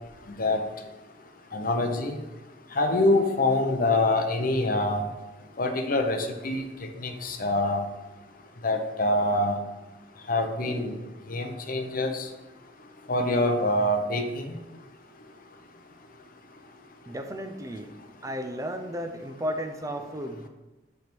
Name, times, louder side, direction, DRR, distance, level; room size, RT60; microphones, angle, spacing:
voice 1, 1.5-2.2 2.8-5.0 5.6-6.6 7.0-7.8 8.6-9.6 10.3-10.9 11.3-12.1 13.1-14.5, left 2 dB, 50° left, 5 dB, 0.9 m, -25 dB
voice 2, 17.1-17.9 18.2-20.5, equal, 20° right, 6 dB, 0.5 m, -34 dB
7.9 x 3.5 x 6.0 m, 1.0 s
head